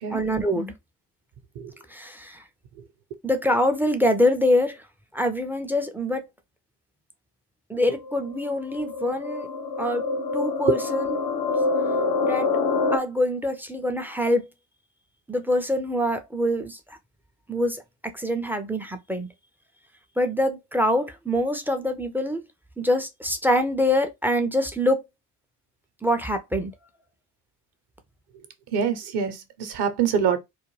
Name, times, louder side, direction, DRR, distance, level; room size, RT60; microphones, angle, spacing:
voice 1, 0.1-0.7 1.9-2.4 3.2-4.9 5.1-6.2 7.7-9.5 9.8-10.1 10.3-11.2 12.2-12.5 12.9-14.5 15.3-17.0 17.5-17.8 18.1-19.3 20.2-22.4 22.8-25.0 26.0-26.7, left 1 dB, 5° right, 0.3 m, -24 dB
sound 1, 7.9-13.0, left 4 dB, 75° left, 0.6 m, -26 dB
voice 2, 28.7-30.4, right 7 dB, 55° right, 0.8 m, -25 dB
2.4 x 2.2 x 3.1 m
hypercardioid pair, 50°, 48 cm